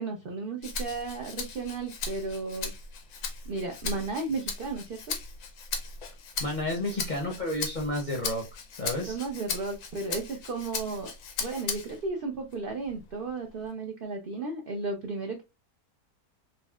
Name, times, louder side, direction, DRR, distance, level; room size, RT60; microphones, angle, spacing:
voice 1, 0.0-2.7 3.5-5.2 9.1-11.1 11.4-15.4, right 3 dB, 65° right, 0.5 m, -34 dB
Rattle (instrument), 0.6-12.1 12.5-13.7, left 5 dB, 85° left, 1.2 m, -37 dB
voice 2, 6.4-8.4 8.7-9.2, left 1 dB, 45° left, 0.6 m, -31 dB
4.1 x 2.0 x 2.2 m
omnidirectional pair, 1.6 m